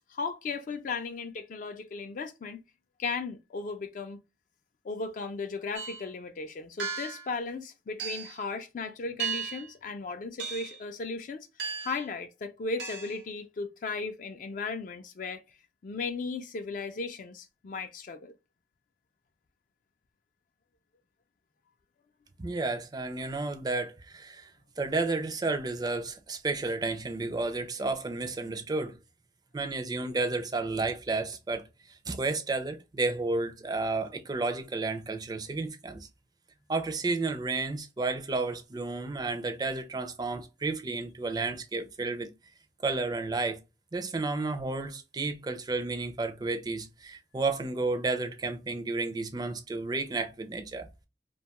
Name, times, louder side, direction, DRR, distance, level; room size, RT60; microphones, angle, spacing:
voice 1, 0.0-2.6 3.0-4.2 4.8-11.5 11.8-15.4 15.8-18.3, left 4 dB, 45° left, 0.3 m, -36 dB
sound 1, 5.7-6.0 6.8-7.3 8.0-8.4 9.2-9.7 10.4-10.8 11.6-12.0 12.8-13.2, right 6 dB, 80° right, 0.9 m, -35 dB
voice 2, 22.4-24.5 24.8-29.0 29.5-31.6 31.9-36.1 36.7-42.3 42.8-43.6 43.9-51.1, right 3 dB, 25° right, 0.4 m, -32 dB
2.6 x 2.3 x 2.8 m
head